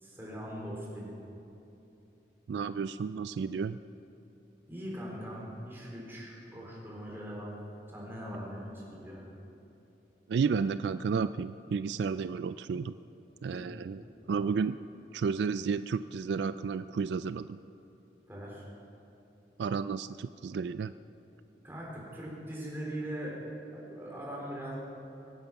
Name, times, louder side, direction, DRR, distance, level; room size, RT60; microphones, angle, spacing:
voice 1, 0.0-1.1 4.7-7.5 7.9-9.3 13.5-13.6 14.0-14.1 18.3-18.6 21.6-23.4 23.7-24.7, equal, 15° right, -4 dB, 3.9 m, -41 dB
voice 2, 2.5-3.8 10.3-12.9 13.4-14.8 15.1-17.6 19.6-20.9, right 5 dB, 75° right, 13 dB, 0.3 m, -32 dB
23.5 x 9.2 x 5.9 m, 2.9 s
head